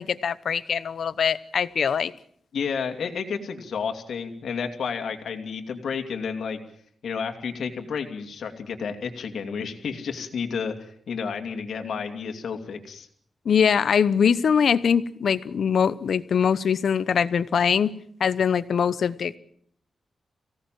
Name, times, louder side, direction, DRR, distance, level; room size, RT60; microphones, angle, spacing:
voice 1, 0.0-2.1 13.4-17.9 18.2-19.4, left 7 dB, 70° left, 16 dB, 0.9 m, -22 dB
voice 2, 2.5-6.6 7.0-13.1, left 6 dB, 85° left, 5 dB, 2.8 m, -31 dB
24.5 x 17.5 x 7.7 m, 0.63 s
wide cardioid pair, 130°, 0 cm